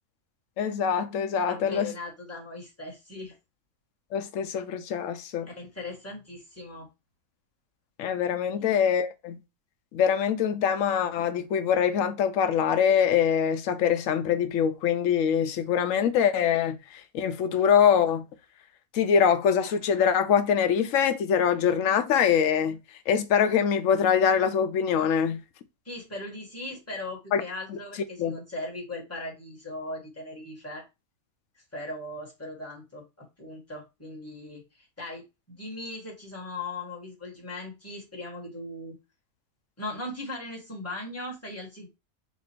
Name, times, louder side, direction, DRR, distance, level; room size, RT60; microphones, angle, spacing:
voice 1, 0.6-1.9 4.1-5.5 8.0-9.4 9.9-18.2 18.9-22.8 23.1-25.4 27.3-27.4 27.7-27.8 28.2-28.4, left 8 dB, 70° left, 0.9 m, -24 dB
voice 2, 1.5-3.4 5.6-6.9 8.5-8.7 25.8-30.8 31.7-35.2 35.6-38.9 39.8-41.9, left 2 dB, 10° left, 1.4 m, -38 dB
4.2 x 2.4 x 4.4 m
omnidirectional pair, 1.5 m